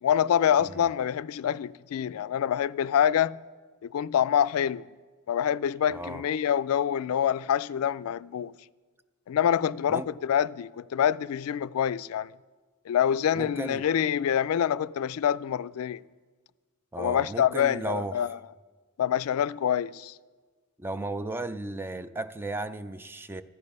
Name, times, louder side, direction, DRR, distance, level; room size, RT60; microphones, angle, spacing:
voice 1, 0.0-3.4 3.8-4.9 5.3-8.5 9.3-12.3 12.9-16.0 17.0-18.4 19.0-20.1, left 9 dB, 80° left, 0.3 m, -26 dB
voice 2, 5.9-6.2 9.9-10.1 13.4-13.9 16.9-18.2 20.8-23.4, right 2 dB, 10° right, 0.3 m, -35 dB
14.0 x 10.5 x 5.3 m
head